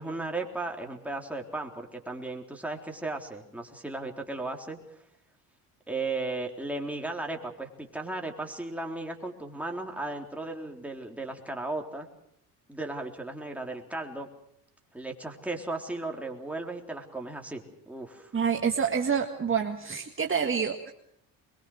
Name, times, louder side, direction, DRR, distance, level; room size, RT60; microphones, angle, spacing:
voice 1, 0.0-4.8 5.9-12.1 12.7-14.3 14.9-18.3, right 2 dB, 5° right, 1 dB, 3.8 m, -35 dB
voice 2, 18.3-20.9, right 6 dB, 30° right, 3 dB, 1.9 m, -27 dB
22.5 x 22.5 x 6.4 m, 0.73 s
supercardioid pair, 85°, 42 cm